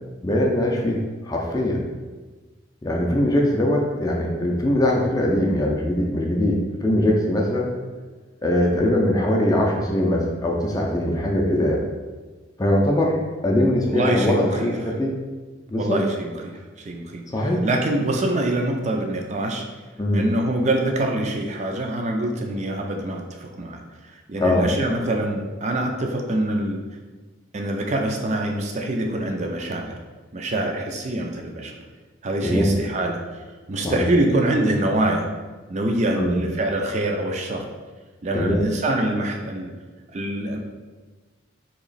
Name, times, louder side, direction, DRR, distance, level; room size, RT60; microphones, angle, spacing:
voice 1, 0.2-1.8 2.8-7.7 8.4-11.8 12.6-15.2 15.7-16.0 17.3-17.6 20.0-20.3 24.4-24.6 32.4-32.7 33.8-34.1 36.2-36.4 38.3-38.6, left 1 dB, 20° left, -1 dB, 0.4 m, -21 dB
voice 2, 13.8-14.7 15.8-16.5 16.9-17.2 17.6-19.6 20.1-23.8 24.3-26.8 27.5-30.0 30.3-31.7 32.2-33.2 33.7-35.3 35.7-37.6 38.2-39.7 40.1-40.6, right 1 dB, 35° right, 2 dB, 0.4 m, -24 dB
3.0 x 2.9 x 4.0 m, 1.3 s
head